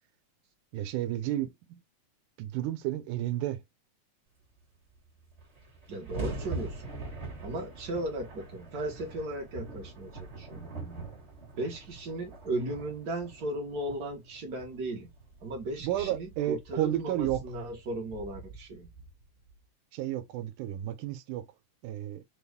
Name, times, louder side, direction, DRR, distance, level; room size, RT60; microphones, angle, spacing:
voice 1, 0.7-1.8 2.4-3.6 15.8-17.4 19.9-21.5 21.8-22.2, right 13 dB, 90° right, 2.2 m, -32 dB
sound 1, 4.9-5.0 5.2-19.5, right 3 dB, 30° right, 1.3 m, -43 dB
voice 2, 5.9-6.9 7.4-11.0 11.6-15.1 15.4-18.9, right 1 dB, 60° right, 0.9 m, -36 dB
5.1 x 2.3 x 3.4 m
omnidirectional pair, 3.5 m